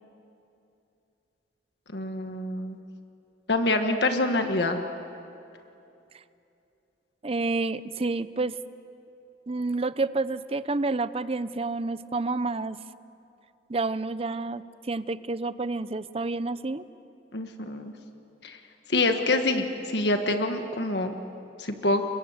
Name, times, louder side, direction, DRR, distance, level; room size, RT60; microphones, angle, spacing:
voice 1, 1.9-2.8 3.5-4.8 17.3-17.9 18.4-18.6 18.9-21.1 21.6-22.0, left 2 dB, 70° left, 6 dB, 1.6 m, -26 dB
voice 2, 7.2-8.6 9.5-12.8 13.7-16.9, right 3 dB, 35° right, 14 dB, 0.7 m, -29 dB
30.0 x 23.0 x 8.1 m, 2.8 s
head